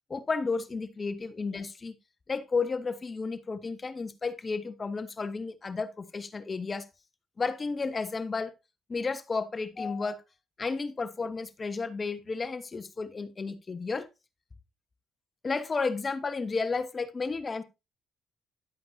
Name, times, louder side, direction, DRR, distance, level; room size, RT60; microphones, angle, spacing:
voice 1, 0.1-1.9 2.3-6.8 7.4-8.5 8.9-10.2 10.6-14.1 15.4-17.6, left 4 dB, 35° left, 1.2 m, -32 dB
11.5 x 8.5 x 2.7 m
supercardioid pair, 55°, 0 cm